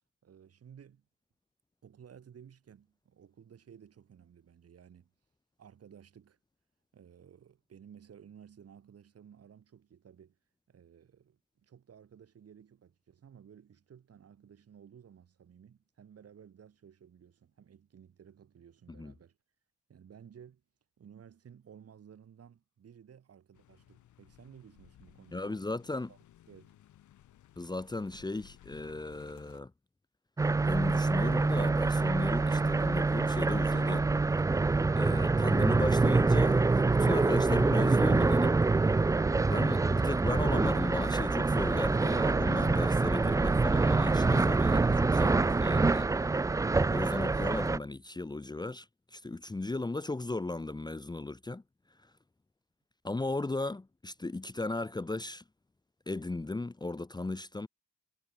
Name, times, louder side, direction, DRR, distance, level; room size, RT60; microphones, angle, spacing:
voice 1, 0.2-1.0 1.8-5.1 5.6-6.4 6.9-10.4 10.7-19.4 19.9-20.6 21.0-25.7 26.1-26.2 26.5-26.8, right 8 dB, 50° right, 4.3 m, -55 dB
sound 1, 23.5-29.6, left 12 dB, 75° left, 5.2 m, -59 dB
voice 2, 25.3-26.1 27.6-29.7 30.6-34.0 35.0-38.6 39.5-46.1 46.9-51.6 53.0-55.4 56.1-57.7, left 2 dB, 15° left, 1.2 m, -36 dB
sound 2, 30.4-47.8, right 3 dB, 10° right, 0.4 m, -26 dB
cardioid pair, 90°, 30 cm